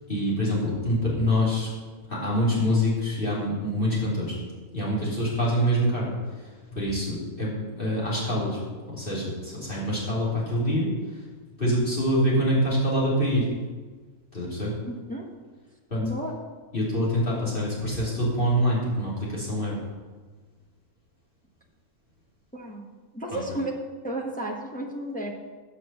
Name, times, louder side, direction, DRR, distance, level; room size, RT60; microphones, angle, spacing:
voice 1, 0.1-1.7 2.1-4.4 4.7-8.6 8.9-11.3 11.6-13.5 14.3-14.8 15.9-16.1 16.7-19.8 23.3-23.4, equal, 40° left, -8 dB, 3.3 m, -25 dB
voice 2, 14.9-15.3 16.0-16.3 22.5-22.8 23.1-23.7 24.0-25.3, right 1 dB, 5° left, -1 dB, 0.9 m, -32 dB
7.5 x 6.9 x 7.0 m, 1.4 s
omnidirectional pair, 1.5 m